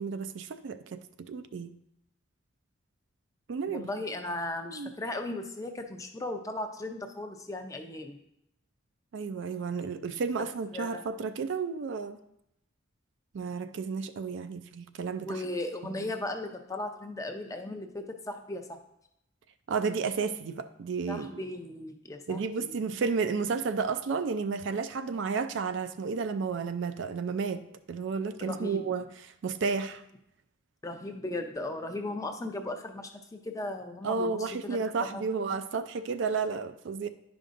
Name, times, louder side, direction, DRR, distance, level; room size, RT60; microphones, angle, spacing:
voice 1, 0.0-1.8 3.5-3.9 4.7-4.9 9.1-12.2 13.3-15.4 19.7-21.4 22.3-30.0 34.0-37.1, right 5 dB, 60° right, 0.4 m, -32 dB
voice 2, 3.7-8.2 10.7-11.0 15.2-18.6 21.1-22.8 28.4-28.9 30.8-34.8 35.1-35.2, left 2 dB, 15° left, 0.5 m, -37 dB
10.5 x 5.1 x 2.5 m
head